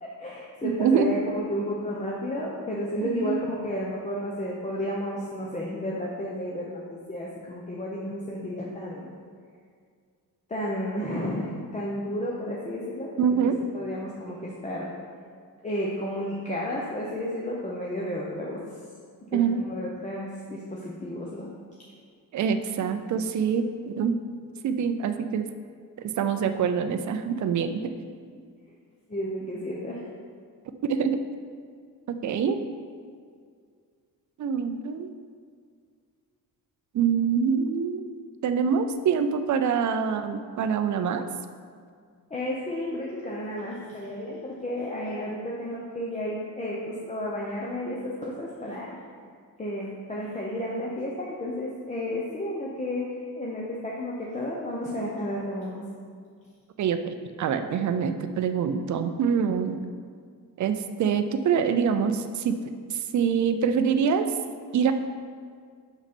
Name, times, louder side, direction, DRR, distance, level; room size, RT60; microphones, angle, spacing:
voice 1, 0.0-9.1 10.5-13.2 13.7-14.9 15.6-18.6 19.3-21.5 29.1-30.1 42.3-49.0 49.6-55.8, left 1 dB, 20° left, -4 dB, 0.7 m, -32 dB
voice 2, 0.6-1.1 3.0-3.4 13.2-13.6 19.3-19.6 22.3-24.2 24.6-25.5 26.0-27.8 30.8-31.2 32.1-32.6 34.4-35.1 36.9-38.1 38.4-41.2 56.8-59.8 60.6-62.6 62.9-64.3 64.7-64.9, right 7 dB, 55° right, 8 dB, 0.5 m, -25 dB
6.4 x 5.9 x 4.3 m, 2.1 s
wide cardioid pair, 150°, 36 cm